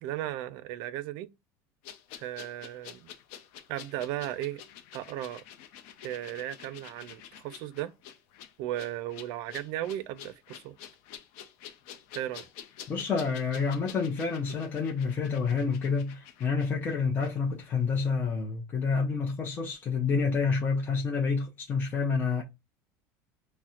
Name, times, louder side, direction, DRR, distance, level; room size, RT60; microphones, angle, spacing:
voice 1, 0.0-1.3 2.1-3.1 3.7-4.6 4.9-5.4 6.0-7.9 8.6-10.8 12.1-12.5, right 13 dB, 60° right, 0.4 m, -36 dB
sound 1, 1.8-17.3 17.6-17.7, left 9 dB, 75° left, 0.5 m, -49 dB
voice 2, 12.9-22.4, left 5 dB, 25° left, 0.6 m, -28 dB
4.1 x 2.1 x 2.4 m
cardioid pair, 145°, 8 cm